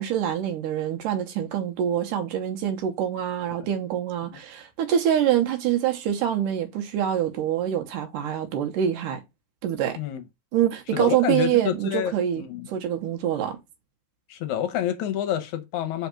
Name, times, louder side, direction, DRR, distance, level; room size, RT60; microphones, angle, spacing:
voice 1, 0.0-9.2 9.6-10.0 10.5-13.6, right 10 dB, 80° right, 2.5 m, -25 dB
voice 2, 10.9-12.7 14.3-16.1, left 11 dB, 75° left, 2.0 m, -28 dB
5.2 x 3.5 x 5.7 m
omnidirectional pair, 3.7 m